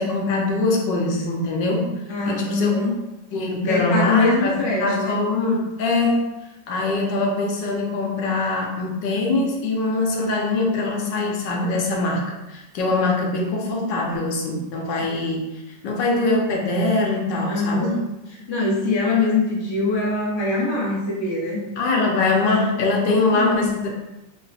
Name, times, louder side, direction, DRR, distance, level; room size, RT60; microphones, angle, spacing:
voice 1, 0.0-1.9 2.3-2.8 3.3-6.3 6.7-18.0 21.8-23.9, left 2 dB, 75° left, 0 dB, 1.4 m, -23 dB
voice 2, 2.1-2.9 3.6-5.2 17.5-18.0 18.5-21.6 23.3-23.7, left 3 dB, 35° left, -5 dB, 0.4 m, -22 dB
3.8 x 2.1 x 4.1 m, 0.99 s
omnidirectional pair, 2.0 m